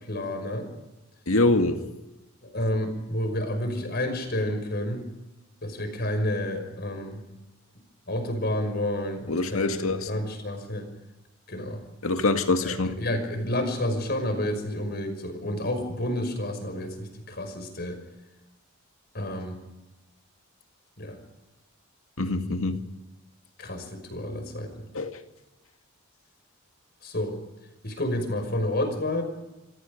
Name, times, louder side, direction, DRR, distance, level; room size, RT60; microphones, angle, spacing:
voice 1, 0.1-0.7 2.4-5.1 5.6-7.2 8.1-10.9 11.5-11.8 12.6-18.0 19.1-19.6 21.0-21.2 23.6-24.7 27.0-27.4 27.8-29.2, left 1 dB, 50° left, 6 dB, 5.8 m, -30 dB
voice 2, 1.3-1.8 9.3-10.2 12.0-13.0 22.2-22.8 24.9-25.2, left 2 dB, 85° left, 6 dB, 2.2 m, -25 dB
27.0 x 25.5 x 5.3 m, 1.0 s
head